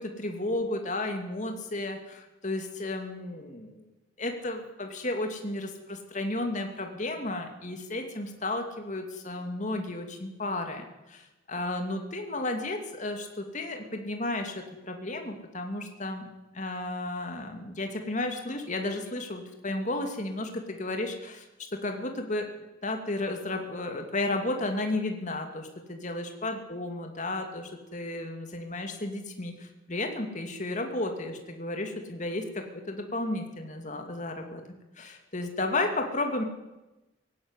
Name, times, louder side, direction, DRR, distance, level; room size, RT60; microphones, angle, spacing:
voice 1, 0.0-3.8 4.2-16.3 16.5-21.5 21.7-22.5 22.8-34.6 35.0-36.4, left 2 dB, 40° left, 4 dB, 2.7 m, -33 dB
19.0 x 16.0 x 9.8 m, 1.0 s
head